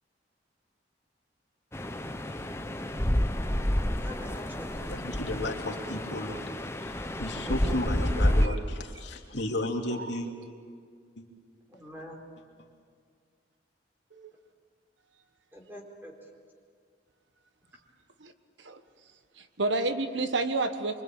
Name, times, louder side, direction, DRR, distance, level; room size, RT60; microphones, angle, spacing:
sound 1, 1.7-8.5, left 1 dB, 15° left, 0.9 m, -29 dB
voice 1, 3.7-5.2 7.4-7.8 11.7-12.2 15.5-16.1, equal, 10° right, -1 dB, 4.2 m, -44 dB
voice 2, 4.9-6.4 6.8-10.3 11.2-11.3, left 1 dB, 70° left, 1 dB, 2.8 m, -34 dB
voice 3, 19.6-21.0, right 2 dB, 80° right, 9 dB, 1.4 m, -29 dB
25.0 x 24.5 x 9.0 m, 2.1 s
head